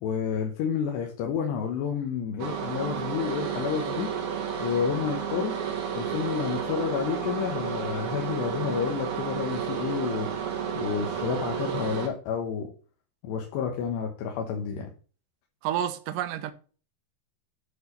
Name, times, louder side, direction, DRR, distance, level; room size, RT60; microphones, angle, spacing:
voice 1, 0.0-4.1 4.6-5.6 5.9-10.3 10.8-12.7 13.2-14.9, left 7 dB, 90° left, 3.3 m, -30 dB
sound 1, 2.4-12.1, right 7 dB, 55° right, 2.7 m, -31 dB
voice 2, 15.6-16.5, right 10 dB, 75° right, 2.0 m, -29 dB
9.3 x 4.6 x 5.4 m
omnidirectional pair, 4.8 m